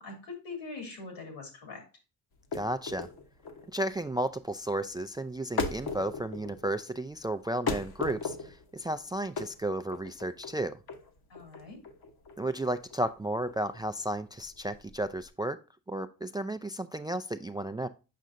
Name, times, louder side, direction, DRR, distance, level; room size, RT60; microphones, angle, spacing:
voice 1, 0.0-1.8 11.3-11.8, left 3 dB, 80° left, 3 dB, 2.6 m, -42 dB
sound 1, 2.3-15.3, left 4 dB, 60° left, 1.1 m, -38 dB
voice 2, 2.5-3.1 3.7-10.8 12.4-15.6 15.9-17.9, right 1 dB, 10° right, 10 dB, 0.3 m, -33 dB
7.5 x 5.6 x 2.5 m, 0.31 s
supercardioid pair, 55°, 42 cm